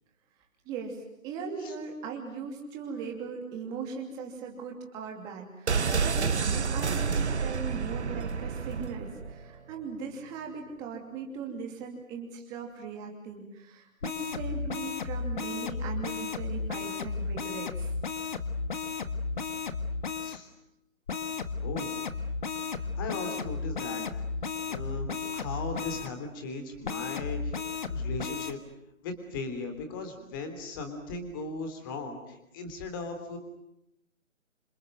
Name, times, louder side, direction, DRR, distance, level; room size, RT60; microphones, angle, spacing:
voice 1, 0.6-17.9, right 5 dB, 10° right, 2 dB, 2.8 m, -39 dB
sound 1, 5.7-9.4 9.7-9.8, right 5 dB, 55° right, 1.4 m, -29 dB
sound 2, 14.0-20.4 21.1-26.1 26.8-28.5, left 4 dB, 35° left, 1.6 m, -34 dB
voice 2, 21.6-21.9 22.9-24.0 24.7-27.5 27.9-28.6 29.0-33.4, left 3 dB, 15° left, 6 dB, 3.3 m, -37 dB
27.5 x 27.5 x 7.8 m, 0.82 s
hypercardioid pair, 170°, 40 cm